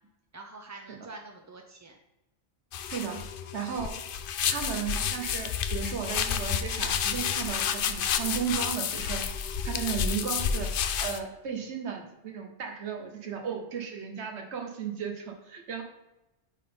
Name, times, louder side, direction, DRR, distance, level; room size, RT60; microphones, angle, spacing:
voice 1, 0.3-2.0, right 3 dB, 30° right, 2 dB, 0.3 m, -46 dB
sound 1, 2.7-11.2, left 7 dB, 60° left, 0.6 m, -30 dB
voice 2, 2.8-3.3 3.5-3.9 4.4-9.3 9.6-10.7 11.0-15.8, right 7 dB, 80° right, 4 dB, 1.3 m, -35 dB
8.9 x 3.9 x 3.7 m, 0.96 s
omnidirectional pair, 1.1 m